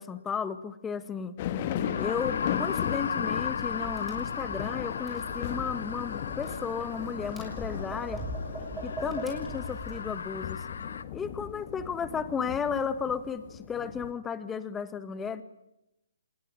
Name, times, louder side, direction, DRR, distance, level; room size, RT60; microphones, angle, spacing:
voice 1, 0.0-1.4 2.0-8.2 8.8-10.7 11.1-15.4, left 6 dB, 10° left, 12 dB, 1.7 m, -34 dB
sound 1, 1.4-14.1, left 10 dB, 35° left, 2.0 m, -37 dB
sound 2, 1.7-11.0, left 6 dB, 65° left, 1.5 m, -36 dB
Tap, 3.7-10.0, equal, 5° right, 6.5 m, -41 dB
26.5 x 21.0 x 10.0 m, 0.88 s
figure-of-eight pair, 140°, 0 cm